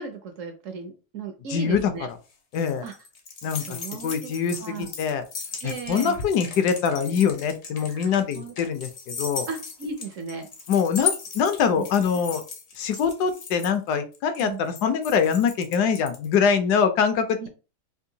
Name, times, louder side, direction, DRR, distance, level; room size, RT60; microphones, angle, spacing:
voice 1, 0.0-2.1 2.8-2.9 3.6-4.3 4.6-4.9 5.6-6.2 7.9-8.5 9.5-10.5 11.8-11.9 14.4-14.6 17.4-17.5, right 4 dB, 65° right, 5 dB, 0.8 m, -35 dB
voice 2, 1.5-1.9 2.5-2.9 3.4-3.8 4.0-5.2 5.6-9.5 10.7-12.4 12.8-17.5, left 6 dB, 75° left, 9 dB, 1.1 m, -24 dB
sound 1, 2.1-16.3, left 6 dB, 55° left, 0.7 m, -36 dB
3.7 x 2.4 x 2.7 m, 0.32 s
omnidirectional pair, 1.8 m